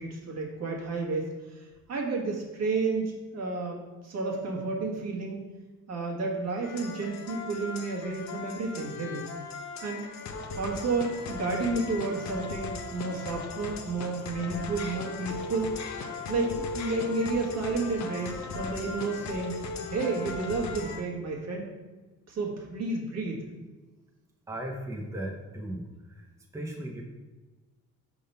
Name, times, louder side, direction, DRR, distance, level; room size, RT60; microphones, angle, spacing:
voice 1, 0.0-5.4 5.9-9.3 9.8-10.1 10.6-15.7 16.3-21.7 22.3-23.4, right 3 dB, 60° right, -1 dB, 1.6 m, -31 dB
sound 1, 6.6-21.0, left 4 dB, 65° left, 0.9 m, -38 dB
voice 2, 24.5-26.3 26.5-27.0, right 1 dB, 10° right, 0 dB, 0.9 m, -37 dB
5.1 x 3.8 x 5.5 m, 1.2 s
cardioid pair, 90°, 30 cm